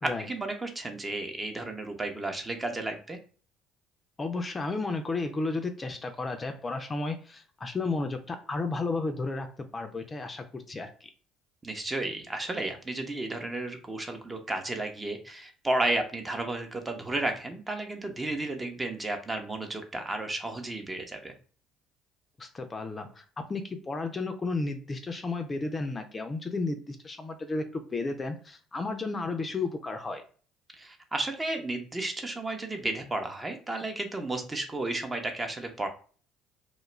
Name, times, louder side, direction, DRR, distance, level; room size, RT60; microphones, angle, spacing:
voice 1, 0.0-3.2 11.6-21.3 30.7-35.9, right 2 dB, 20° right, 4 dB, 0.6 m, -33 dB
voice 2, 4.2-9.5 9.7-10.9 22.4-30.2, left 3 dB, 30° left, 6 dB, 0.4 m, -33 dB
2.3 x 2.1 x 3.0 m, 0.40 s
hypercardioid pair, 60°, 0 cm